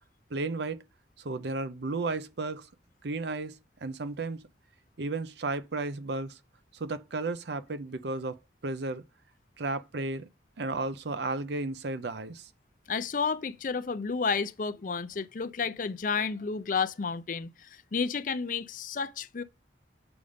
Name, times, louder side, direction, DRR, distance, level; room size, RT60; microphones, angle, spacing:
voice 1, 0.3-0.8 1.2-2.7 3.0-4.4 5.0-6.4 6.7-8.4 8.6-9.0 9.6-10.3 10.6-12.5, right 3 dB, 65° right, 0.6 m, -33 dB
voice 2, 12.9-19.4, left 5 dB, 45° left, 0.5 m, -31 dB
7.0 x 5.2 x 5.0 m
head